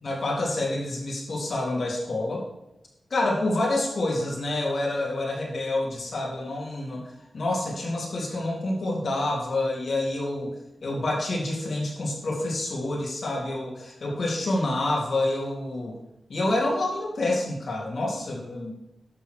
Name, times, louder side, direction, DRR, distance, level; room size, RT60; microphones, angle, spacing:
voice 1, 0.0-2.4 3.1-10.5 10.8-16.0 16.3-18.7, left 2 dB, 55° left, -3 dB, 3.6 m, -28 dB
12.0 x 6.1 x 6.6 m, 0.86 s
wide cardioid pair, 170°, 0 cm